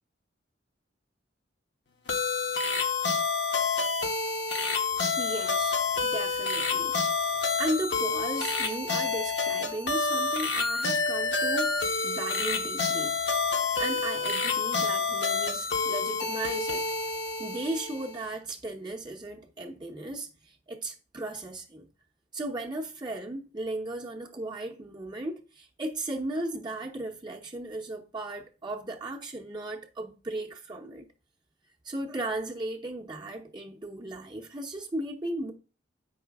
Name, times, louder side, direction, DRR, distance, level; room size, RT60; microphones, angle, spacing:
sound 1, 2.1-18.3, left 4 dB, 65° left, 0.9 m, -28 dB
voice 1, 5.1-13.2 13.8-16.9 17.4-21.9 22.3-31.1 31.8-35.5, right 2 dB, 25° right, 0.8 m, -36 dB
8.0 x 5.6 x 3.4 m
head